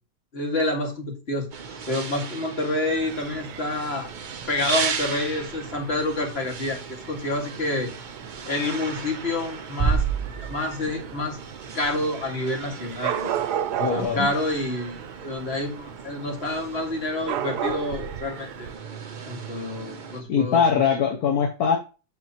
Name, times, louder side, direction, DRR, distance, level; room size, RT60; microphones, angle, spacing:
voice 1, 0.3-1.5 1.9-4.1 4.5-7.9 8.5-10.0 10.4-11.4 11.7-13.4 13.9-18.7 19.3-20.8, left 2 dB, 35° left, 2 dB, 2.4 m, -28 dB
sound 1, 1.5-20.2, right 5 dB, 45° right, 0.7 m, -37 dB
Dog / Cat, 2.9-18.8, right 10 dB, 75° right, 1.3 m, -36 dB
sound 2, 9.8-11.4, right 5 dB, 15° right, 2.7 m, -26 dB
voice 2, 13.8-14.3 20.3-21.8, left 7 dB, 65° left, 3 dB, 1.6 m, -22 dB
9.5 x 6.9 x 3.0 m, 0.32 s
omnidirectional pair, 1.8 m